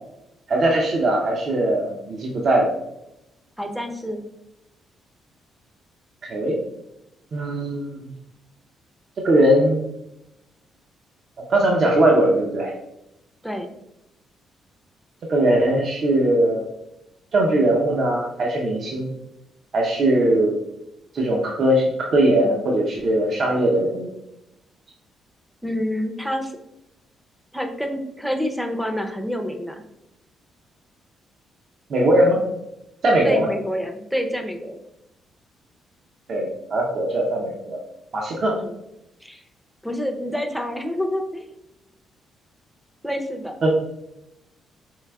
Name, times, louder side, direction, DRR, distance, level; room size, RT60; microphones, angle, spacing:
voice 1, 0.5-2.7 6.2-6.6 7.3-8.1 9.2-9.8 11.5-12.7 15.2-16.6 17.3-19.1 19.7-20.5 21.1-24.1 31.9-32.4 33.0-33.5 36.3-37.8 38.1-38.5 43.6-43.7, right 1 dB, 55° right, -1 dB, 0.6 m, -20 dB
voice 2, 3.6-4.2 13.4-13.7 25.6-26.5 27.5-29.8 33.2-34.8 38.6-38.8 39.2-39.4 39.8-41.5 43.0-43.6, equal, ahead, 4 dB, 0.5 m, -27 dB
4.6 x 3.3 x 2.2 m, 0.88 s
cardioid pair, 90°, 0 cm